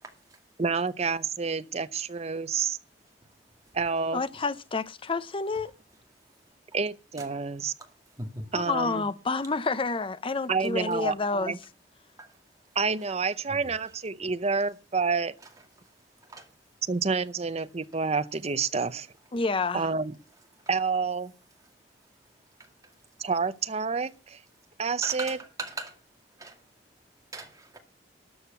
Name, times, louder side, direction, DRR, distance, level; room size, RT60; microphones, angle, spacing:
voice 1, 0.6-2.8 3.7-4.2 6.7-7.7 8.5-9.1 10.5-11.6 12.7-15.3 16.9-19.1 19.7-20.2 20.7-21.3 23.2-24.4 24.8-25.4, right 5 dB, 35° right, 0.7 m, -28 dB
voice 2, 4.1-5.7 8.5-11.6 19.3-19.9, left 4 dB, 30° left, 0.6 m, -29 dB
voice 3, 25.0-25.9 26.4-26.5 27.3-27.8, right 2 dB, 20° right, 2.2 m, -38 dB
12.5 x 6.5 x 6.9 m
head